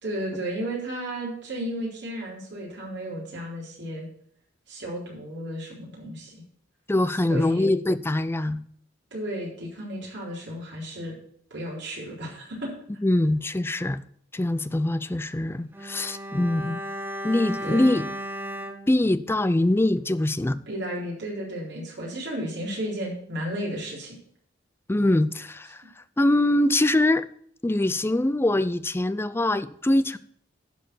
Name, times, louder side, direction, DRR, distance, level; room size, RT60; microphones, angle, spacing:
voice 1, 0.0-4.1 4.7-6.4 7.2-7.7 9.1-11.1 11.5-12.7 17.6-17.9 20.7-24.2, right 1 dB, 65° right, 4.1 m, -33 dB
voice 2, 6.9-8.6 13.0-14.0 14.3-16.8 17.2-18.1 18.9-20.6 24.9-25.8 26.2-27.3 27.6-30.2, left 1 dB, 15° left, 0.4 m, -23 dB
Bowed string instrument, 15.7-20.2 20.4-20.6, equal, 10° right, 0.8 m, -36 dB
11.5 x 4.7 x 7.7 m
head